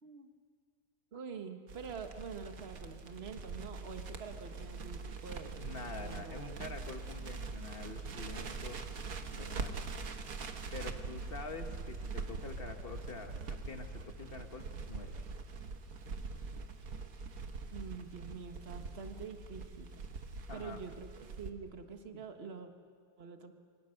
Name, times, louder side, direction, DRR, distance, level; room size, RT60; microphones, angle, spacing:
voice 1, 1.1-6.6 17.7-19.9 20.5-22.7 23.2-23.5, right 5 dB, 45° right, 6 dB, 1.7 m, -46 dB
Crackle, 1.7-21.5, right 4 dB, 75° right, 1.7 m, -43 dB
voice 2, 5.6-8.8 9.3-9.8 10.7-15.1 20.5-20.8 22.1-22.2, left 4 dB, 40° left, 6 dB, 1.7 m, -46 dB
28.5 x 24.0 x 6.5 m, 2.1 s
omnidirectional pair, 1.5 m